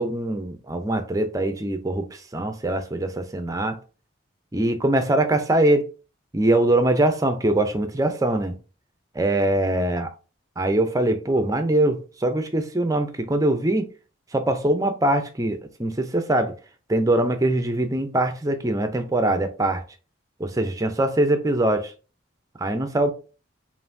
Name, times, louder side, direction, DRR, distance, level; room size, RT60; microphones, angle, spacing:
voice 1, 0.0-3.8 4.5-5.9 6.3-8.6 9.1-10.1 10.6-13.9 14.3-16.5 16.9-19.8 20.4-21.9 22.6-23.1, right 1 dB, 15° right, 0.5 m, -22 dB
5.4 x 2.5 x 2.6 m
head